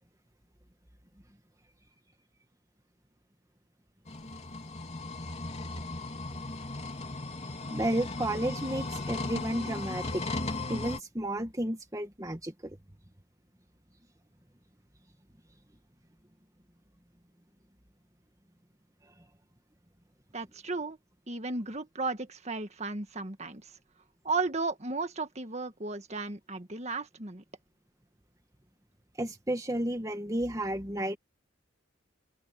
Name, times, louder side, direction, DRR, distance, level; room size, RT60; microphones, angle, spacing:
sound 1, 4.1-11.0, left 2 dB, 35° left, 3.5 m, -37 dB
voice 1, 7.7-10.2 10.7-12.8 29.2-31.2, right 1 dB, 15° right, 1.9 m, -32 dB
voice 2, 20.3-21.0 21.3-23.7 24.2-27.4, right 3 dB, 35° right, 1.7 m, -34 dB
open air
head